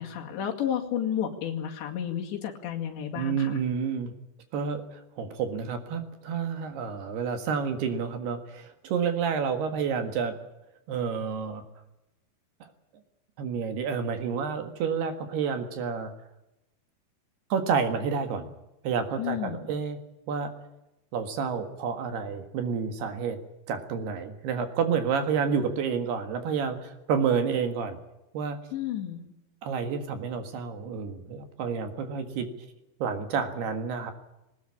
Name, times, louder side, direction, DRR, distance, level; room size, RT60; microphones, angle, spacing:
voice 1, 0.0-3.6 19.2-19.6 28.7-29.2, left 9 dB, 80° left, 2 dB, 4.4 m, -31 dB
voice 2, 3.2-4.1 4.5-10.4 10.9-11.6 13.4-16.1 17.5-18.5 18.8-20.0 20.3-20.5 21.1-23.4 23.7-28.0 28.3-28.6 29.6-32.5 33.0-34.1, right 6 dB, 70° right, 7 dB, 3.6 m, -29 dB
20.5 x 19.0 x 8.5 m, 0.93 s
omnidirectional pair, 5.0 m